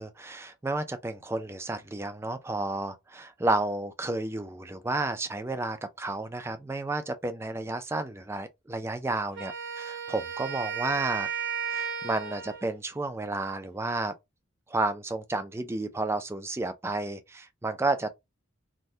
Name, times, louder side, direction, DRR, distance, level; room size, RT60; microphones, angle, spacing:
voice 1, 0.0-11.3 11.7-14.1 14.7-18.1, right 2 dB, 10° right, 0.3 m, -31 dB
Wind instrument woodwind instrument, 9.3-12.7, right 7 dB, 55° right, 0.9 m, -34 dB
3.3 x 2.2 x 2.7 m
head